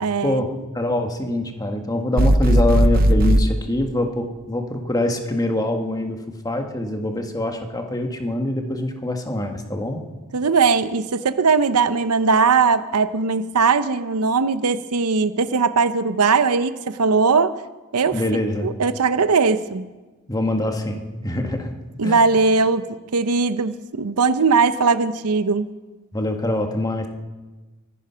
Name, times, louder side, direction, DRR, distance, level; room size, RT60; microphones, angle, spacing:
voice 1, 0.0-0.4 10.3-17.6 17.9-19.9 22.0-22.8 23.1-25.7, right 4 dB, 85° right, 13 dB, 0.7 m, -19 dB
voice 2, 0.7-6.2 6.4-10.0 18.1-18.7 20.3-21.7 22.0-22.2 26.1-27.1, left 1 dB, 15° left, 4 dB, 1.5 m, -24 dB
sound 1, 2.2-3.4, right 1 dB, 40° right, 0.6 m, -16 dB
24.0 x 10.0 x 5.7 m, 1.2 s
head